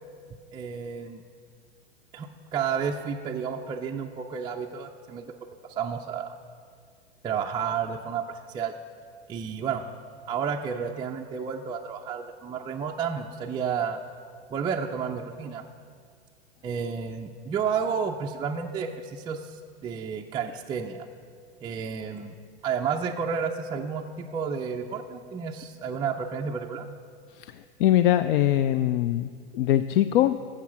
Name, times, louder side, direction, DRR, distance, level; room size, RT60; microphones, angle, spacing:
voice 1, 0.5-1.2 2.1-5.3 5.7-6.3 7.2-8.7 9.3-9.8 10.3-14.0 14.5-15.6 16.6-21.1 21.6-22.3 22.6-26.9, right 6 dB, 15° right, 0 dB, 0.3 m, -31 dB
voice 2, 27.8-29.3 29.5-30.4, left 12 dB, 60° left, 12 dB, 0.4 m, -21 dB
13.0 x 7.5 x 5.8 m, 2.1 s
hypercardioid pair, 105°, 33 cm